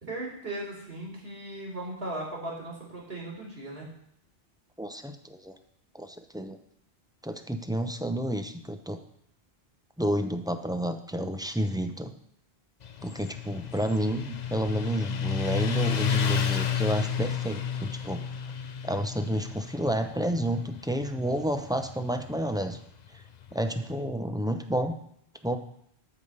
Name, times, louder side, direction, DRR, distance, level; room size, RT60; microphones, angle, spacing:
voice 1, 0.0-3.9, right 1 dB, 65° right, -4 dB, 4.0 m, -37 dB
voice 2, 4.8-5.5 5.9-6.6 7.2-9.0 10.0-12.1 13.0-18.2 18.8-22.8 23.5-24.9 25.4-25.6, equal, 5° right, 6 dB, 0.5 m, -30 dB
Motorcycle, 12.8-23.9, left 7 dB, 50° left, 0.7 m, -32 dB
13.0 x 5.1 x 5.5 m, 0.70 s
omnidirectional pair, 1.1 m